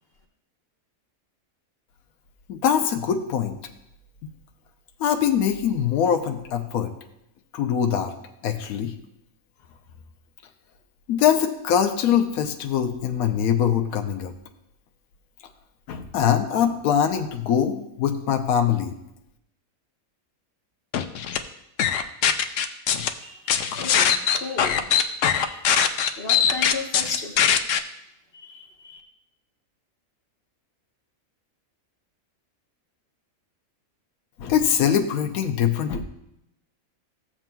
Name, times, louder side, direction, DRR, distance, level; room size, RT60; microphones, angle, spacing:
voice 1, 2.5-3.6 5.0-6.9 7.5-8.1 8.4-8.9 11.1-14.3 15.9-18.9 34.4-36.0, left 8 dB, 85° left, 5 dB, 1.1 m, -23 dB
sound 1, 20.9-21.4 21.8-23.1 23.5-27.8, left 8 dB, 65° left, 0.9 m, -21 dB
voice 2, 23.2-25.7 26.2-27.6 28.3-29.0, left 4 dB, 45° left, 0 dB, 1.3 m, -36 dB
15.0 x 7.3 x 2.3 m, 0.81 s
omnidirectional pair, 1.5 m